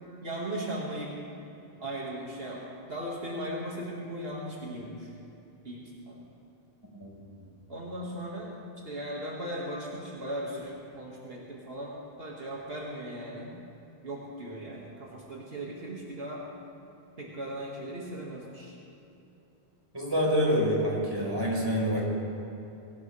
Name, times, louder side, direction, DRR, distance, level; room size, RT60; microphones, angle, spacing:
voice 1, 0.2-1.1 1.8-2.6 2.9-5.1 5.6-6.2 7.7-13.6 14.0-16.4 17.2-18.8, right 1 dB, 70° right, -4 dB, 2.2 m, -38 dB
voice 2, 19.9-22.0, equal, 25° right, -4 dB, 4.4 m, -26 dB
23.5 x 17.5 x 3.3 m, 2.8 s
omnidirectional pair, 1.0 m